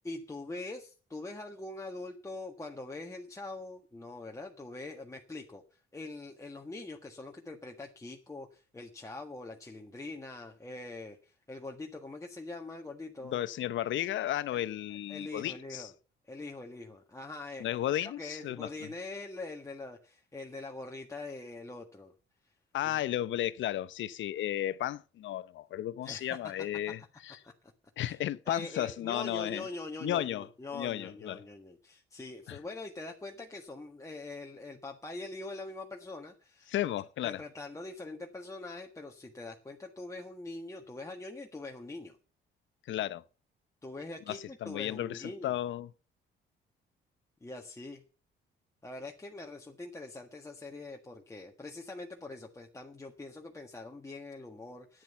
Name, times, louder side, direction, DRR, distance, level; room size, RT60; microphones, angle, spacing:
voice 1, 0.0-13.4 14.5-14.6 15.1-15.9 16.3-17.7 18.0-22.1 22.8-23.0 26.0-26.4 27.4-27.5 28.0-28.2 28.5-36.7 37.2-42.2 43.8-45.5 47.4-48.0 48.8-55.0, left 2 dB, 15° left, 1.6 m, -43 dB
voice 2, 13.2-15.9 17.6-18.9 22.7-27.4 28.0-29.7 30.0-30.5 30.7-31.4 32.5-32.6 36.7-37.4 42.9-43.2 44.3-45.9, left 12 dB, 75° left, 0.8 m, -34 dB
10.5 x 9.5 x 6.9 m
cardioid pair, 90°, 20 cm